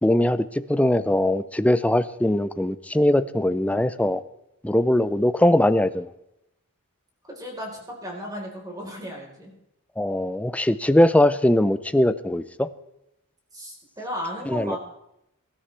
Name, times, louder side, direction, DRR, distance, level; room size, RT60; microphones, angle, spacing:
voice 1, 0.0-4.2 4.6-6.1 10.0-12.7 14.5-14.8, left 1 dB, 5° left, 13 dB, 0.5 m, -21 dB
voice 2, 7.3-9.5 13.5-14.8, equal, 20° right, -2 dB, 4.1 m, -35 dB
23.0 x 12.5 x 3.4 m, 0.86 s
head